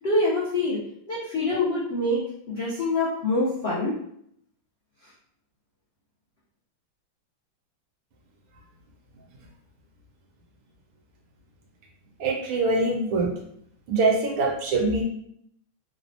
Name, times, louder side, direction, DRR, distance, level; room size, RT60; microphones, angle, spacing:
voice 1, 0.0-0.8 1.1-3.9, left 2 dB, 75° left, -8 dB, 0.5 m, -25 dB
voice 2, 12.2-13.3 13.9-15.0, right 3 dB, 85° right, 0 dB, 1.5 m, -23 dB
3.5 x 2.0 x 2.6 m, 0.69 s
omnidirectional pair, 2.2 m